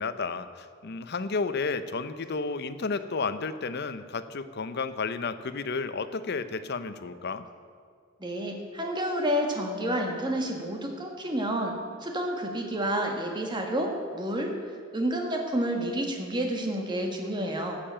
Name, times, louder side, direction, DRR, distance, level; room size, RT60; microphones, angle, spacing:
voice 1, 0.0-7.5, left 4 dB, 50° left, 12 dB, 0.6 m, -32 dB
voice 2, 8.2-11.7 12.0-14.5 14.9-17.8, right 1 dB, 20° right, 2 dB, 1.5 m, -29 dB
13.0 x 6.8 x 8.8 m, 2.1 s
head